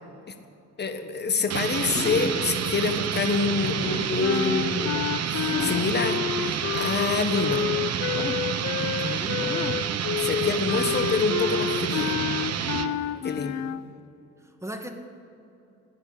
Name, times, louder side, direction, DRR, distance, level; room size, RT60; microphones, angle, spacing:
voice 1, 0.8-5.1 5.3-7.7 10.2-12.2 13.2-13.7, left 4 dB, 35° left, 7 dB, 1.5 m, -27 dB
sound 1, 1.5-12.9, right 8 dB, 60° right, 1.0 m, -29 dB
sound 2, 1.8-2.6 3.7-4.2 5.5-6.0 8.1-8.5 9.4-9.9, left 3 dB, 15° left, 0.6 m, -34 dB
sound 3, 4.2-13.8, left 10 dB, 65° left, 0.6 m, -30 dB
voice 2, 8.8-9.4 13.1-13.3 13.5-13.8 14.4-14.9, right 1 dB, 10° right, 4 dB, 1.8 m, -39 dB
16.0 x 10.0 x 8.4 m, 2.8 s
cardioid pair, 90°, 30 cm